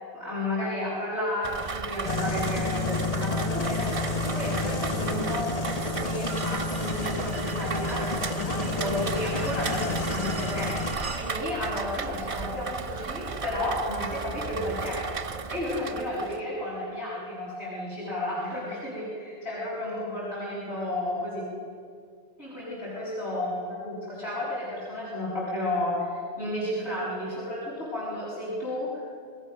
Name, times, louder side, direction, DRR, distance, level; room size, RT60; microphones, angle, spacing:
voice 1, 0.1-3.9 4.3-5.5 5.8-10.7 11.1-15.0 15.5-21.5 22.4-23.5 23.8-29.0, left 1 dB, 60° left, -9 dB, 7.5 m, -32 dB
Rain, 1.4-16.4, right 5 dB, 35° right, 0.6 m, -35 dB
sound 1, 2.0-11.0, left 3 dB, 35° left, 1.2 m, -30 dB
sound 2, 6.3-11.3, right 3 dB, 75° right, 2.4 m, -40 dB
28.0 x 20.0 x 6.6 m, 2.2 s
omnidirectional pair, 1.2 m